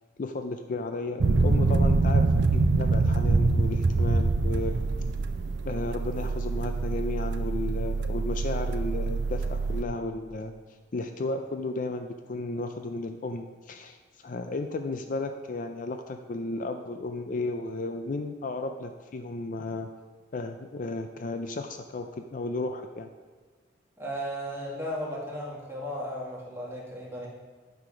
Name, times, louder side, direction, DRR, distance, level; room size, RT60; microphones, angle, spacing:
voice 1, 0.2-4.8 5.6-10.5 10.9-19.9 20.3-23.1, left 2 dB, 45° left, 7 dB, 0.4 m, -34 dB
sound 1, 1.2-9.8, right 3 dB, 65° right, 0.5 m, -25 dB
voice 2, 24.0-27.3, equal, 15° right, -5 dB, 1.9 m, -35 dB
9.1 x 5.8 x 4.9 m, 1.4 s
head